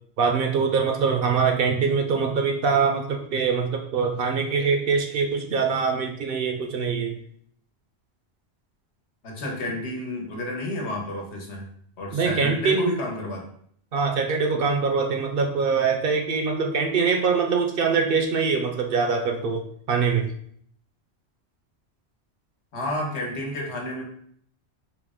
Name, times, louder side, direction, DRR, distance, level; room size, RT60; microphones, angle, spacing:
voice 1, 0.2-7.2 12.1-12.9 13.9-20.3, right 5 dB, 65° right, 4 dB, 0.7 m, -23 dB
voice 2, 9.2-11.7 12.0-13.4 22.7-24.0, left 1 dB, 80° left, 0 dB, 1.2 m, -31 dB
4.7 x 2.0 x 3.6 m, 0.64 s
omnidirectional pair, 1.1 m